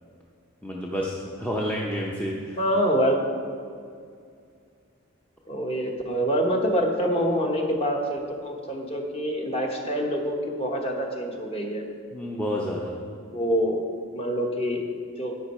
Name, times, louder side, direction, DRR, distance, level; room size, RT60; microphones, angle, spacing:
voice 1, 0.6-2.6 12.1-13.0, equal, 5° left, -3 dB, 0.6 m, -29 dB
voice 2, 2.6-3.2 5.5-11.8 13.3-13.8 14.1-14.8 15.2-15.4, equal, 30° left, 2 dB, 1.1 m, -26 dB
10.0 x 8.9 x 4.3 m, 2.3 s
head